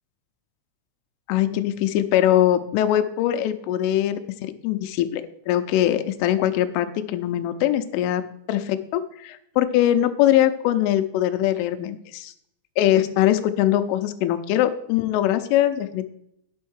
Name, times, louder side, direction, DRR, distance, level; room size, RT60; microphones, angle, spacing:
voice 1, 1.3-12.3 12.8-16.1, left 12 dB, 85° left, 10 dB, 3.2 m, -22 dB
10.5 x 6.4 x 6.2 m, 0.75 s
omnidirectional pair, 5.7 m